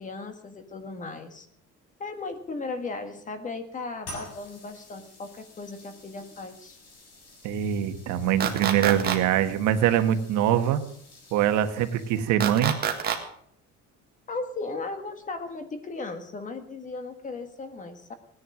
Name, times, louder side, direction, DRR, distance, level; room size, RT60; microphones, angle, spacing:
voice 1, 0.0-1.5 2.0-6.8 14.3-18.1, left 3 dB, 25° left, 8 dB, 1.7 m, -36 dB
sound 1, 4.0-12.6, left 1 dB, 55° left, 7.2 m, -49 dB
voice 2, 7.4-10.8 11.3-12.7, right 10 dB, 75° right, 8 dB, 1.6 m, -23 dB
sound 2, 8.4-9.2 12.4-13.2, right 8 dB, 30° right, 1.9 m, -26 dB
17.5 x 10.5 x 6.3 m, 0.64 s
cardioid pair, 160°, 30 cm